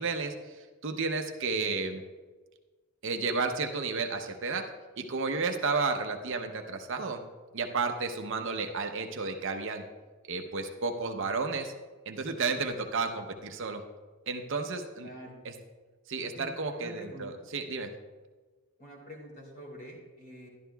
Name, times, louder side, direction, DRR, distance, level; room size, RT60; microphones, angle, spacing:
voice 1, 0.0-2.0 3.0-4.6 5.0-7.2 7.5-9.8 10.3-11.7 12.1-13.8 14.3-15.1 16.1-17.9, right 4 dB, 55° right, 4 dB, 0.7 m, -32 dB
voice 2, 15.0-15.4 16.2-17.5 18.8-20.5, equal, 40° left, -2 dB, 2.8 m, -47 dB
12.5 x 11.0 x 2.3 m, 1.3 s
head